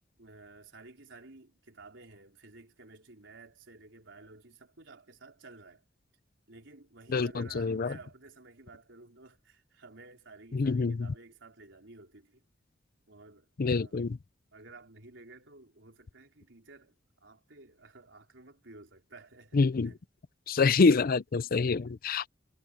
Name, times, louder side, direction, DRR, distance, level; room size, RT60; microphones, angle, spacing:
voice 1, 0.2-5.8 6.5-12.4 13.1-14.1 14.5-20.0 21.4-21.5, right 3 dB, 75° right, 4.6 m, -53 dB
voice 2, 7.1-7.9 10.5-11.1 13.6-14.1 19.5-19.9 20.5-22.3, left 4 dB, 50° left, 0.5 m, -26 dB
head